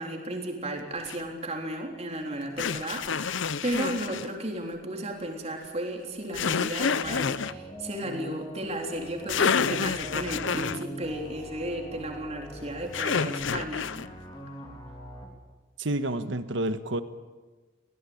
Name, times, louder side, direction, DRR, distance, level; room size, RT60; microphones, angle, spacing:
voice 1, 0.0-13.9, right 1 dB, 30° right, 2 dB, 3.7 m, -34 dB
sound 1, 1.0-1.2 2.6-4.3 6.3-7.5 9.0-9.1 9.3-10.8 12.9-14.1, left 6 dB, 65° left, 0.6 m, -28 dB
sound 2, 7.0-15.3, equal, 20° left, 3.5 m, -42 dB
voice 2, 15.8-17.0, right 1 dB, 65° right, 10 dB, 1.3 m, -29 dB
22.0 x 17.0 x 8.7 m, 1.3 s
head